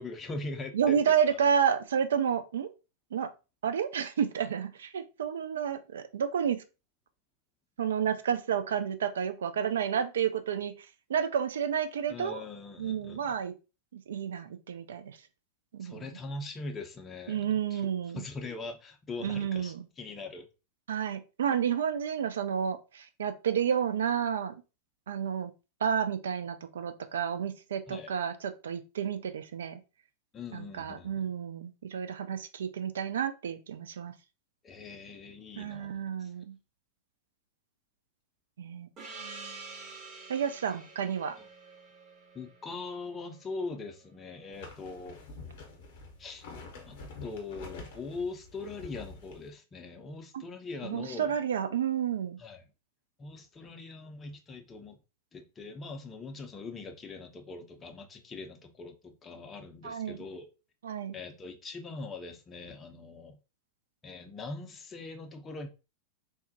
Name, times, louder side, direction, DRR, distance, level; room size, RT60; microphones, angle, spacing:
voice 1, 0.0-1.4 12.1-13.2 15.8-17.8 18.1-20.5 27.9-28.1 30.3-31.3 34.6-36.3 41.4-41.5 42.3-45.2 46.2-46.5 46.9-51.4 52.4-52.6 53.2-55.0 55.3-60.5 61.1-63.4 64.0-65.7, left 3 dB, 20° left, 0.5 m, -42 dB
voice 2, 0.7-2.7 3.1-3.3 3.6-6.6 7.8-10.7 11.1-12.4 12.8-13.5 13.9-15.2 15.7-16.2 17.3-18.2 19.2-19.9 20.9-24.6 25.1-25.5 25.8-29.8 30.5-34.1 35.6-36.6 38.6-38.9 40.3-41.4 50.3-50.4 50.8-52.4 59.8-60.2 60.8-61.2, right 8 dB, 65° right, 0.3 m, -30 dB
Gong, 39.0-44.0, right 4 dB, 30° right, 0.9 m, -48 dB
sound 1, 44.5-49.5, left 3 dB, 50° left, 0.7 m, -47 dB
3.4 x 2.1 x 2.6 m
figure-of-eight pair, 90°, 0 cm